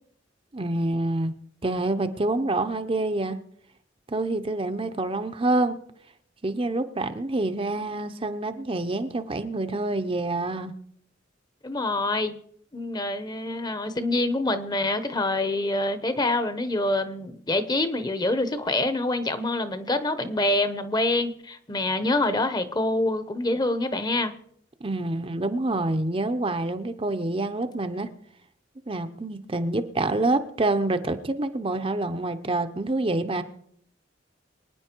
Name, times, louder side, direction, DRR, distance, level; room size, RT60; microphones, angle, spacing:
voice 1, 0.5-1.4 1.6-3.4 4.1-5.8 6.4-10.7 24.8-28.1 28.9-33.4, right 2 dB, 30° right, 9 dB, 0.8 m, -27 dB
voice 2, 11.6-12.3 12.7-24.3, left 2 dB, 20° left, 10 dB, 1.0 m, -26 dB
24.0 x 9.5 x 4.6 m, 0.68 s
head